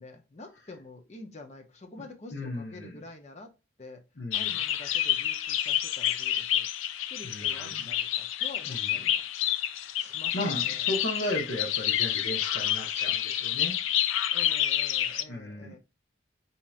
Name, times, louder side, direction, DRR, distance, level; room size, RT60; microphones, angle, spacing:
voice 1, 0.0-3.5 3.8-4.0 4.3-6.7 7.1-9.2 10.0-10.8 14.3-15.8, left 2 dB, 35° left, 0.6 m, -47 dB
voice 2, 2.3-3.0 4.2-4.5 7.2-7.9 8.7-9.0 10.3-13.8 15.3-15.7, left 1 dB, 60° left, 0.9 m, -35 dB
sound 1, 4.3-15.2, left 11 dB, 85° left, 0.4 m, -29 dB
4.4 x 2.8 x 2.4 m
head